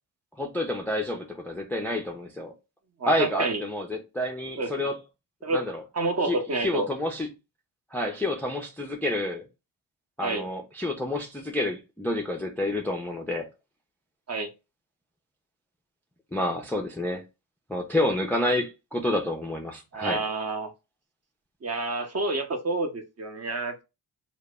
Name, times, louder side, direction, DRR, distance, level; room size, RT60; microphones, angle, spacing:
voice 1, 0.4-2.5 3.1-5.0 5.5-5.8 6.2-7.3 7.9-9.4 10.2-13.5 16.3-17.2 17.7-20.2, left 1 dB, 5° left, 0.4 m, -29 dB
voice 2, 3.0-3.6 4.6-4.9 5.4-5.6 5.9-6.9 10.2-10.4 14.3-14.5 19.9-20.7 21.6-23.8, right 3 dB, 35° right, 0.7 m, -28 dB
2.0 x 2.0 x 3.4 m
cardioid pair, 60°, 47 cm